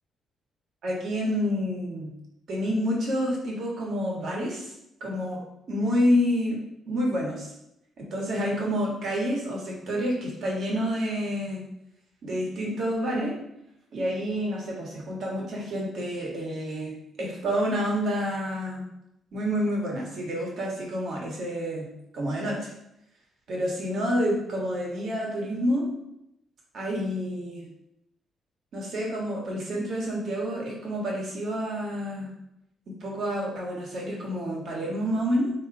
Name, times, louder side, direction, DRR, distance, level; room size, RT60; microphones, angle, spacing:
voice 1, 0.8-2.1 2.5-4.7 5.0-5.4 5.7-6.6 6.9-7.5 8.0-11.6 12.2-13.3 13.9-18.8 19.3-22.7 23.5-25.9 26.7-27.7 28.7-32.3 33.0-35.5, equal, 50° right, -2 dB, 1.3 m, -28 dB
3.6 x 2.9 x 4.6 m, 0.82 s
cardioid pair, 165°, 0 cm